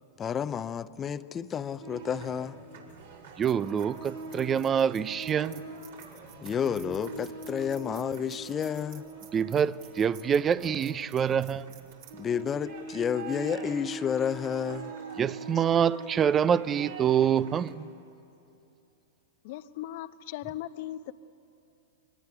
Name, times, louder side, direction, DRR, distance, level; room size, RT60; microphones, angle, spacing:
voice 1, 0.2-2.6 6.4-9.0 12.1-14.9 15.6-15.7, left 8 dB, 25° left, 0.8 m, -31 dB
sound 1, 1.8-17.7, right 3 dB, 75° right, 5.4 m, -43 dB
sound 2, 2.9-13.3, right 9 dB, 55° right, 2.6 m, -56 dB
voice 2, 3.4-5.6 9.3-11.8 15.2-17.9, right 8 dB, 25° right, 0.6 m, -26 dB
voice 3, 19.4-21.1, left 13 dB, 55° left, 1.0 m, -38 dB
24.5 x 20.0 x 9.8 m
hypercardioid pair, 110°, 0 cm